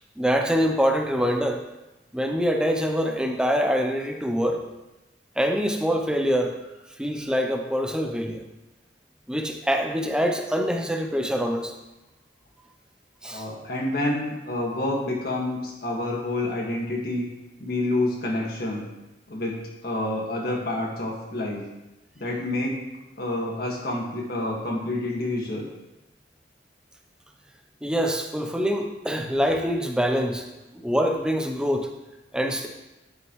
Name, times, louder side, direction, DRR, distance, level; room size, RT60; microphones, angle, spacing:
voice 1, 0.2-1.6 2.1-4.6 5.4-6.6 7.0-8.4 9.3-11.8 13.2-13.5 27.8-30.5 30.7-31.9 32.3-32.7, equal, 5° right, 4 dB, 0.6 m, -24 dB
voice 2, 13.2-17.3 17.6-18.9 19.3-21.6 22.2-22.8 23.2-25.7, left 1 dB, 55° left, -1 dB, 1.8 m, -28 dB
11.0 x 7.6 x 3.1 m, 1.0 s
head